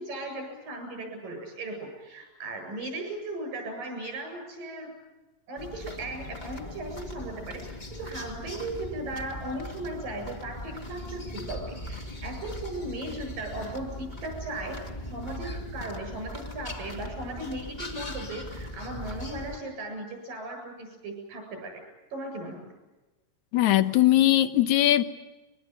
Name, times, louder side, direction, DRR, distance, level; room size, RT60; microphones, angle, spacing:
voice 1, 0.0-4.9 5.5-14.8 15.1-21.8 22.1-22.7, right 2 dB, 85° right, 4 dB, 9.6 m, -37 dB
sound 1, 5.6-19.6, left 1 dB, 20° left, 1.4 m, -39 dB
voice 2, 23.5-25.0, left 14 dB, 70° left, 12 dB, 2.2 m, -20 dB
23.5 x 22.0 x 9.3 m, 1.1 s
omnidirectional pair, 3.8 m